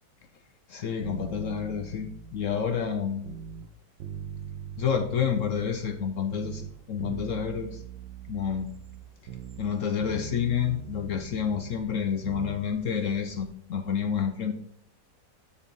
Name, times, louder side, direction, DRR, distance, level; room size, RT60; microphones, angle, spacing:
voice 1, 0.7-3.2 4.8-7.8 8.3-8.7 9.6-14.5, left 7 dB, 65° left, 7 dB, 0.8 m, -29 dB
sound 1, 1.0-3.7 4.0-6.1 6.3-9.7 10.0-12.6 12.9-13.0, right 6 dB, 90° right, 1.5 m, -41 dB
sound 2, 8.4-13.5, right 1 dB, 55° right, 3.3 m, -55 dB
8.4 x 4.4 x 5.2 m, 0.67 s
omnidirectional pair, 1.9 m